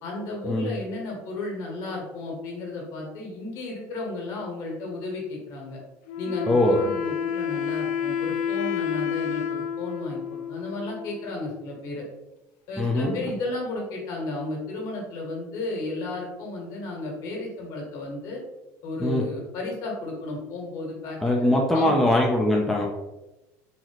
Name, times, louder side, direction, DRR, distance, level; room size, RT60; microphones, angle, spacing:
voice 1, 0.0-5.8 6.2-12.1 12.7-18.4 18.8-21.9, left 2 dB, 60° left, -2 dB, 1.5 m, -33 dB
Wind instrument woodwind instrument, 6.1-11.6, left 8 dB, 90° left, 0.4 m, -30 dB
voice 2, 6.5-6.8 12.8-13.2 19.0-19.2 21.2-22.9, left 1 dB, 5° left, -2 dB, 0.4 m, -22 dB
4.0 x 2.7 x 3.0 m, 0.99 s
cardioid pair, 145°, 7 cm